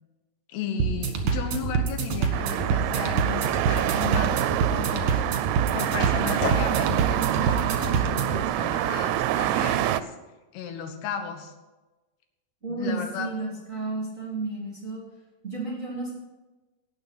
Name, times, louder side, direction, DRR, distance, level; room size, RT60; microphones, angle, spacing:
voice 1, 0.5-5.2 5.7-10.1 10.5-11.5 12.7-13.3, left 7 dB, 85° left, 6 dB, 3.3 m, -35 dB
sound 1, 0.8-8.4, right 6 dB, 55° right, 2.4 m, -27 dB
sound 2, 2.3-10.0, right 13 dB, 90° right, 2.6 m, -26 dB
Skateboard, 3.9-9.1, left 2 dB, 40° left, 2.5 m, -38 dB
voice 2, 12.6-15.0 15.4-16.1, right 3 dB, 25° right, -3 dB, 2.0 m, -32 dB
18.0 x 6.7 x 5.8 m, 1.2 s
omnidirectional pair, 4.6 m